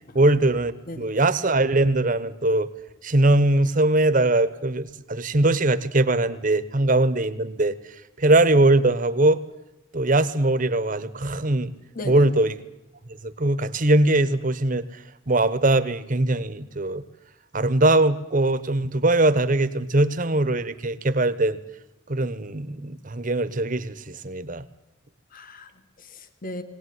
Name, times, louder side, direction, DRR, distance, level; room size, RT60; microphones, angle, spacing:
voice 1, 0.1-2.7 3.0-7.7 8.2-9.4 9.9-11.7 12.1-12.5 13.2-14.9 15.3-17.0 17.5-21.6 22.1-24.6, right 2 dB, 45° right, 13 dB, 1.1 m, -21 dB
voice 2, 0.9-1.2 11.9-12.3 25.3-26.6, left 1 dB, 45° left, 9 dB, 1.6 m, -37 dB
20.5 x 18.5 x 9.6 m, 0.89 s
head